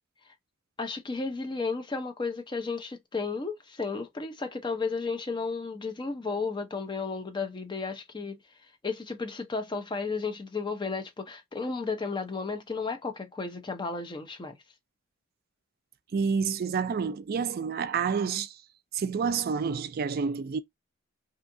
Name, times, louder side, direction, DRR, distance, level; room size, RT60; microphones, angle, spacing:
voice 1, 0.8-8.4 8.8-14.6, left 4 dB, 20° left, 0.5 m, -33 dB
voice 2, 16.1-18.6 18.9-20.6, right 6 dB, 45° right, 0.3 m, -29 dB
2.7 x 2.4 x 2.6 m
head